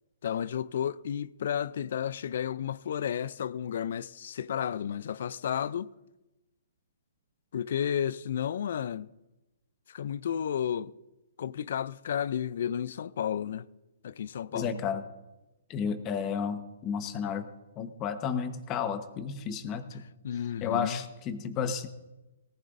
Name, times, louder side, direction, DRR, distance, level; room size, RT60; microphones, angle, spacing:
voice 1, 0.2-5.9 7.5-9.1 9.9-10.9 11.4-13.7 14.0-14.8 20.2-21.0, left 9 dB, 60° left, 0.4 m, -32 dB
voice 2, 14.5-15.0 15.7-20.0 20.6-21.9, left 7 dB, 25° left, 1.1 m, -32 dB
18.5 x 14.5 x 2.6 m
hypercardioid pair, 135°, 0 cm